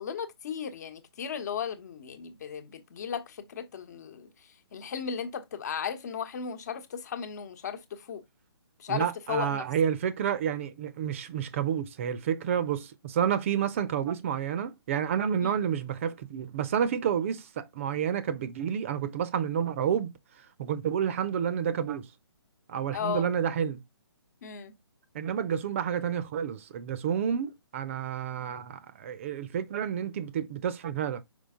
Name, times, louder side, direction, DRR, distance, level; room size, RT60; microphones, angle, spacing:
voice 1, 0.0-4.3 4.7-8.2 8.8-9.6 15.4-15.6 22.9-23.3 24.4-24.7, left 7 dB, 40° left, 1.1 m, -35 dB
voice 2, 8.9-20.1 20.6-22.1 22.7-23.8 25.1-31.2, right 8 dB, 30° right, 0.7 m, -30 dB
5.6 x 4.8 x 3.7 m
figure-of-eight pair, 135°, 14 cm